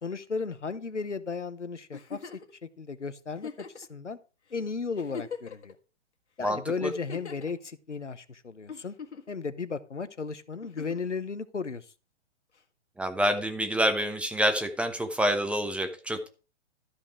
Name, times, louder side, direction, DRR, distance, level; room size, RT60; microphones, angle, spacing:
voice 1, 0.0-2.3 2.6-4.2 4.5-5.8 6.4-8.9 9.3-11.9, left 4 dB, 90° left, 14 dB, 1.0 m, -35 dB
Giggle, 1.9-2.5 3.4-3.9 4.5-4.6 4.9-5.7 6.9-7.5 8.7-9.3 10.6-11.1 12.6-12.7, left 6 dB, 70° left, 1.8 m, -41 dB
voice 2, 6.4-6.9 13.0-16.3, equal, 5° right, 6 dB, 0.9 m, -27 dB
13.0 x 5.2 x 4.8 m, 0.35 s
figure-of-eight pair, 120°, 35 cm